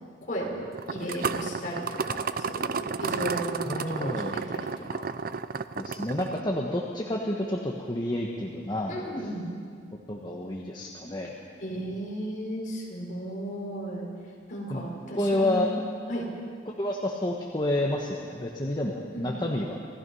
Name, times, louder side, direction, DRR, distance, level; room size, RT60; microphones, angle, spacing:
voice 1, 0.2-0.6 0.9-5.0 8.9-9.5 11.6-14.1 14.5-15.8 16.1-16.3 19.1-19.3, equal, 45° left, -3 dB, 5.5 m, -35 dB
sound 1, 0.7-6.4, right 5 dB, 50° right, 0.6 m, -32 dB
voice 2, 3.6-4.4 5.8-9.0 10.1-11.3 14.7-14.8 15.1-15.7 16.8-19.9, left 1 dB, 25° left, -1 dB, 1.4 m, -29 dB
27.0 x 17.0 x 5.6 m, 2.2 s
head